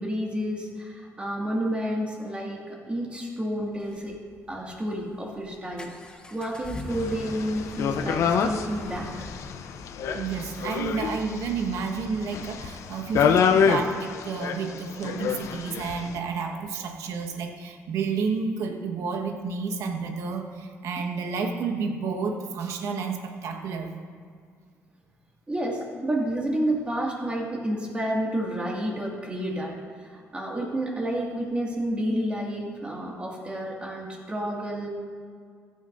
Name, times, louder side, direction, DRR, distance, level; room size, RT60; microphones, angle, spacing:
voice 1, 0.0-4.2 4.5-5.9 6.3-9.3 13.1-13.2 25.5-34.9, right 1 dB, 20° right, -3 dB, 2.0 m, -30 dB
sound 1, 3.5-17.4, left 1 dB, 15° left, 1.1 m, -45 dB
sound 2, 6.9-16.2, left 7 dB, 70° left, 0.6 m, -27 dB
voice 2, 10.1-23.9, right 5 dB, 80° right, 3 dB, 1.3 m, -30 dB
15.0 x 11.5 x 2.6 m, 2.1 s
cardioid pair, 105°, 5 cm